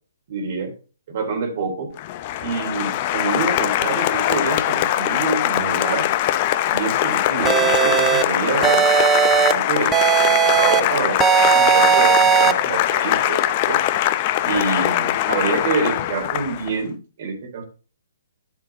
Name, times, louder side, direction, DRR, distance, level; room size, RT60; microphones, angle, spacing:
voice 1, 0.3-0.7 1.1-1.9 2.4-6.1 6.7-8.9 9.2-13.8 14.4-17.6, right 4 dB, 50° right, 4 dB, 3.7 m, -27 dB
Applause, 2.0-16.8, left 13 dB, 35° left, 0.7 m, -22 dB
sound 1, 7.4-8.2 8.6-9.5 9.9-10.8 11.2-12.5, right 8 dB, 15° right, 0.6 m, -16 dB
12.5 x 7.4 x 2.8 m, 0.36 s
figure-of-eight pair, 135°, 0 cm